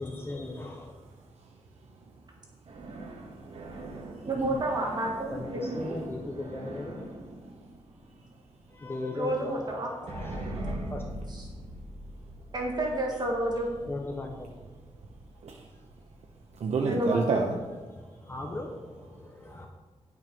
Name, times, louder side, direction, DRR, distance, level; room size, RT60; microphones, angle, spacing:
voice 1, 0.0-0.9 5.3-7.3 8.7-11.0 13.7-14.6 18.0-19.7, left 2 dB, 20° left, 2 dB, 0.8 m, -38 dB
voice 2, 0.9-4.4 4.7-4.9 5.8-6.1 7.4-8.9 10.0-10.1 10.5-10.8 11.5-12.5 13.1-13.2 13.8-13.9 14.7-18.3 19.1-19.7, right 4 dB, 85° right, 1 dB, 0.8 m, -37 dB
sound 1, 2.7-8.6 10.1-15.4, right 1 dB, 60° right, 1.6 m, -41 dB
voice 3, 4.2-6.0 9.1-9.9 12.5-13.7 16.9-17.2, right 1 dB, 40° right, -1 dB, 1.6 m, -30 dB
10.5 x 6.1 x 5.3 m, 1.4 s
wide cardioid pair, 160°, 11 cm